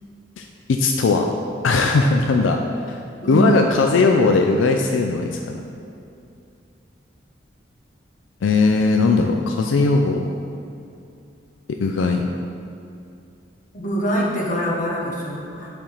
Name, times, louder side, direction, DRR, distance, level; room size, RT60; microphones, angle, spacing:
voice 1, 0.4-1.3 1.6-2.6 2.9-3.0 3.3-5.6 8.4-10.3 11.8-12.2, left 3 dB, 85° left, 3 dB, 0.4 m, -18 dB
voice 2, 13.7-15.7, right 1 dB, 45° left, -3 dB, 1.1 m, -24 dB
5.0 x 4.4 x 5.5 m, 2.6 s
head